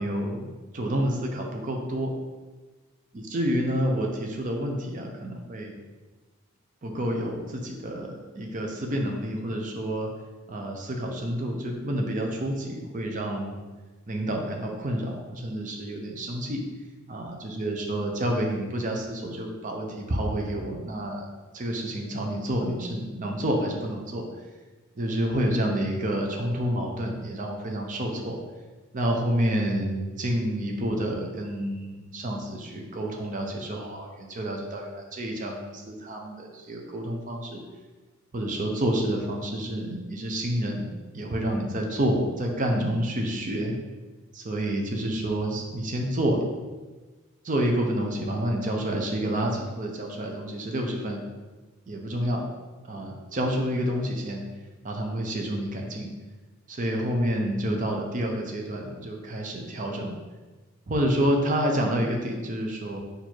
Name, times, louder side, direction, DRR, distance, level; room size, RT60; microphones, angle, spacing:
voice 1, 0.0-2.1 3.1-5.8 6.8-10.1 10.5-13.6 14.1-16.6 17.1-21.3 21.5-24.2 25.0-28.4 28.9-37.6 38.3-40.9 41.1-43.7 44.3-46.4 47.4-51.2 51.9-52.4 52.9-54.4 54.8-56.1 56.7-60.2 60.9-63.0, right 1 dB, 40° right, 1 dB, 0.6 m, -29 dB
4.4 x 2.6 x 4.4 m, 1.3 s
head